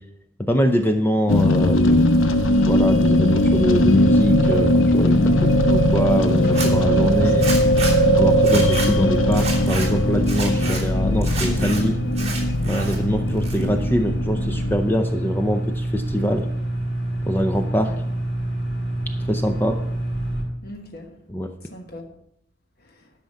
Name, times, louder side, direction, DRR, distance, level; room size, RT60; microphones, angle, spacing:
voice 1, 0.4-2.0 2.7-7.5 8.2-12.0 12.7-16.5 17.2-17.9 19.3-19.8 21.3-21.5, equal, 10° left, 6 dB, 0.5 m, -24 dB
sound 1, 1.3-14.8, left 1 dB, 90° left, 0.8 m, -19 dB
sound 2, 3.6-20.4, right 1 dB, 70° left, 4.5 m, -27 dB
Zipper (clothing), 6.4-6.7 7.4-7.9 8.4-8.9 9.3-9.9 10.2-10.8 11.2-11.8 12.1-13.0 13.3-13.9, right 4 dB, 35° right, 2.9 m, -30 dB
voice 2, 7.1-7.7 8.1-8.3 17.8-18.0 20.6-21.1 21.6-22.1, left 1 dB, 50° left, 3 dB, 1.3 m, -39 dB
12.0 x 5.8 x 6.6 m, 0.79 s
head